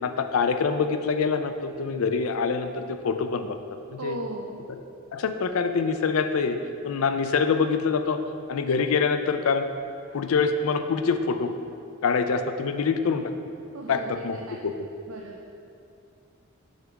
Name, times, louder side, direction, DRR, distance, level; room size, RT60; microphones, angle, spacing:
voice 1, 0.0-3.6 3.9-4.2 5.1-6.6 6.8-8.2 8.5-9.7 10.1-11.5 12.0-13.3 13.9-14.4 14.6-14.7, left 5 dB, 90° left, 8 dB, 0.4 m, -25 dB
voice 2, 4.0-4.6 13.7-14.6 15.1-15.4, right 2 dB, 75° right, 0 dB, 0.5 m, -37 dB
6.5 x 3.5 x 5.9 m, 2.6 s
head